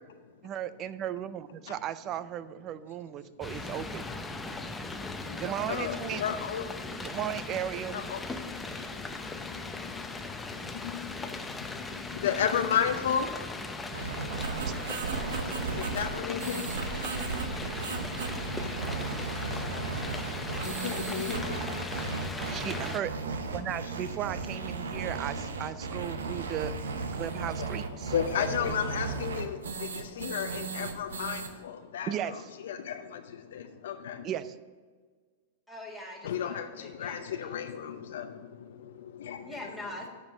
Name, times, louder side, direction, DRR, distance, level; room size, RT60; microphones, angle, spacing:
voice 1, 0.4-4.0 5.4-6.2 7.0-8.0 22.3-23.1 23.5-26.7 27.2-28.1 32.1-32.5 34.2-34.5, right 11 dB, 35° right, 14 dB, 0.5 m, -35 dB
sound 1, 3.4-23.0, left 3 dB, 10° left, 0.7 m, -38 dB
voice 2, 5.1-5.4 5.7-7.1 7.9-8.2 8.6-8.9 9.8-13.7 15.6-16.7 18.1-19.6 19.9-22.4 23.7-23.8 24.8-24.9 27.6-34.3 36.2-39.6, left 8 dB, 75° left, 6 dB, 0.6 m, -35 dB
sound 2, 13.9-31.5, right 4 dB, 85° right, 1.0 m, -35 dB
voice 3, 35.7-37.7 39.4-40.1, left 1 dB, 5° right, -2 dB, 1.9 m, -43 dB
9.4 x 5.3 x 7.5 m, 1.5 s
hypercardioid pair, 120°, 0 cm